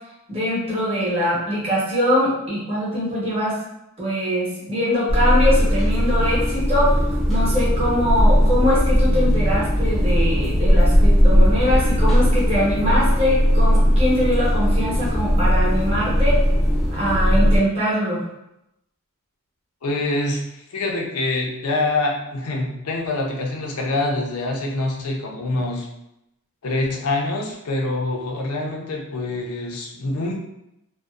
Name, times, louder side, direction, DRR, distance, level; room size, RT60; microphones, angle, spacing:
voice 1, 0.3-3.6 4.0-16.4 16.9-18.2, equal, 30° right, -7 dB, 1.0 m, -22 dB
sound 1, 5.1-17.6, equal, ahead, 0.6 m, -18 dB
voice 2, 19.8-25.9 26.6-30.4, left 2 dB, 90° left, -1 dB, 0.5 m, -25 dB
2.6 x 2.1 x 2.3 m, 0.84 s
head